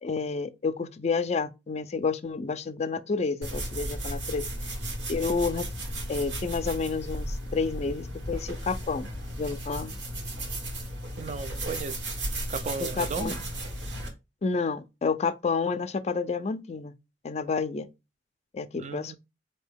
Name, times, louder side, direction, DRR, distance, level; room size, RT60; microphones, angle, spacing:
voice 1, 0.0-4.7 5.1-5.7 6.1-9.1 9.4-10.0 12.8-13.3 14.4-16.9 17.2-17.9 18.5-19.2, left 4 dB, 35° left, 0.4 m, -30 dB
sound 1, 3.4-14.1, right 1 dB, 85° right, 1.3 m, -35 dB
voice 2, 11.2-12.1 12.5-13.4 18.7-19.2, right 4 dB, 40° right, 0.4 m, -35 dB
4.4 x 2.7 x 3.4 m
head